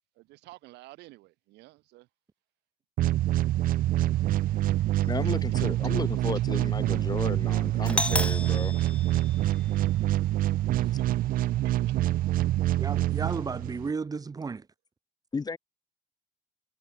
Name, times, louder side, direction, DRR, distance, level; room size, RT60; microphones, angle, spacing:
voice 1, 0.2-2.1 5.8-5.9 6.3-6.4 10.4-10.6 11.0-12.0, right 20 dB, 90° right, 4.2 m, -52 dB
sound 1, 3.0-13.9, right 14 dB, 55° right, 0.4 m, -26 dB
voice 2, 5.0-8.7 15.3-15.6, left 4 dB, 25° left, 1.1 m, -34 dB
Doorbell, 7.9-9.9, left 1 dB, 5° left, 2.2 m, -32 dB
voice 3, 12.8-14.7, right 4 dB, 20° right, 0.8 m, -33 dB
cardioid pair, 110°, 17 cm